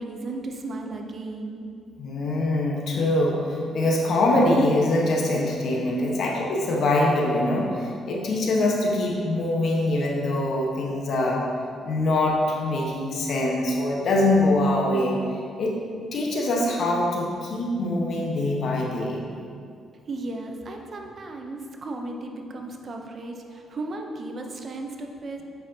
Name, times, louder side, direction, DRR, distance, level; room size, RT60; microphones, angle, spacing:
voice 1, 0.0-1.6 20.1-25.4, right 2 dB, 45° right, 3 dB, 0.7 m, -35 dB
voice 2, 2.0-11.4 11.8-15.2 15.6-15.8 16.1-19.2, left 1 dB, 65° left, -1 dB, 1.2 m, -23 dB
8.0 x 6.0 x 2.8 m, 2.3 s
cardioid pair, 90°, 0 cm